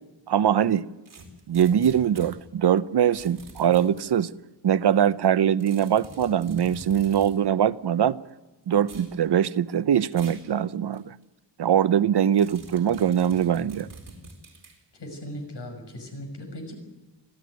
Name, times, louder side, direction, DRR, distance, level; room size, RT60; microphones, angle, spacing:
voice 1, 0.3-0.9 1.5-4.3 4.6-8.2 8.7-11.1 11.6-13.9, right 9 dB, 70° right, 0.7 m, -22 dB
sound 1, 1.1-2.3 3.1-4.1 5.6-7.4 8.8-9.1 10.1-10.5 10.9-11.0 12.4-14.8, right 2 dB, 50° right, 4.4 m, -45 dB
voice 2, 14.9-16.7, equal, 75° left, 6.1 m, -38 dB
26.0 x 15.5 x 9.4 m
wide cardioid pair, 170°, 42 cm